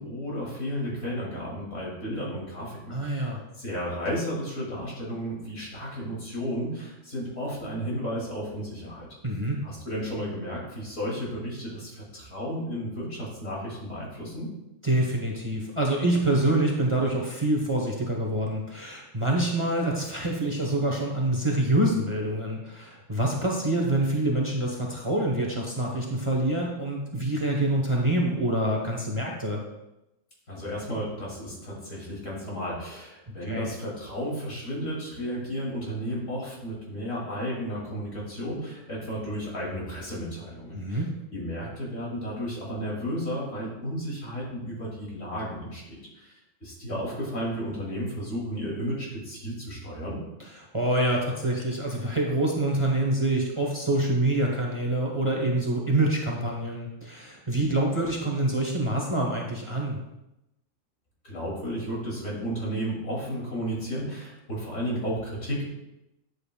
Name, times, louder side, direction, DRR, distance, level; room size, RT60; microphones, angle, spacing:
voice 1, 0.0-9.1 9.6-14.5 30.5-41.0 41.3-50.2 61.2-65.7, equal, 70° left, -4 dB, 2.9 m, -33 dB
voice 2, 2.9-3.4 9.2-9.6 14.8-29.6 33.4-33.7 40.7-41.1 50.7-60.0, right 1 dB, 25° right, -1 dB, 1.0 m, -26 dB
9.6 x 7.8 x 2.3 m, 0.93 s
omnidirectional pair, 1.3 m